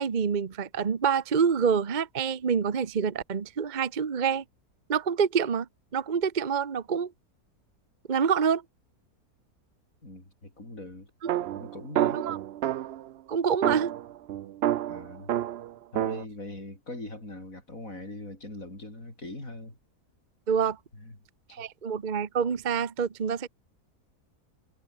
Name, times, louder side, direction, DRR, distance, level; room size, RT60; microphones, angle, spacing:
voice 1, 0.0-4.4 4.9-5.7 5.9-7.1 8.1-8.6 11.2-11.3 12.1-12.4 13.3-13.9 20.5-20.8 21.5-23.5, right 6 dB, 35° right, 0.9 m, -27 dB
voice 2, 10.0-11.1 11.5-12.2 14.9-15.4 15.9-19.8 20.9-21.2 21.5-21.7, left 2 dB, 55° left, 7.3 m, -41 dB
sound 1, 11.3-13.1 13.6-16.2, right 12 dB, 90° right, 0.5 m, -29 dB
omnidirectional pair, 1.7 m